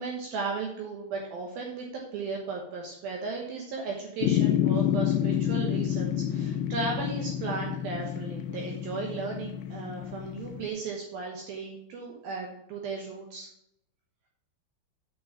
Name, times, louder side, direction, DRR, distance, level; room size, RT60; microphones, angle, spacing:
voice 1, 0.0-13.5, right 4 dB, 70° right, 0 dB, 2.4 m, -35 dB
sound 1, 4.2-10.7, left 10 dB, 85° left, 3.2 m, -29 dB
8.4 x 6.2 x 5.8 m, 0.77 s
omnidirectional pair, 5.5 m